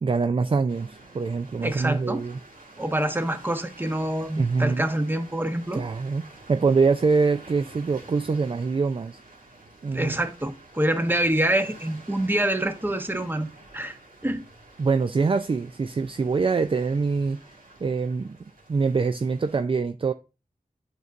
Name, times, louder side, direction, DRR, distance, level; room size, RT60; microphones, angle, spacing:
voice 1, 0.0-2.4 4.3-4.9 5.7-6.2 6.5-9.2 9.8-10.1 14.8-17.4 17.8-18.4 18.7-20.1, right 4 dB, 35° right, 0.4 m, -24 dB
sound 1, 0.7-19.6, right 2 dB, 70° right, 1.8 m, -49 dB
voice 2, 1.6-2.2 2.8-5.8 9.9-13.5 13.7-14.0 14.2-14.4, right 1 dB, 15° right, 0.9 m, -26 dB
8.0 x 5.2 x 2.5 m
wide cardioid pair, 55°, 15 cm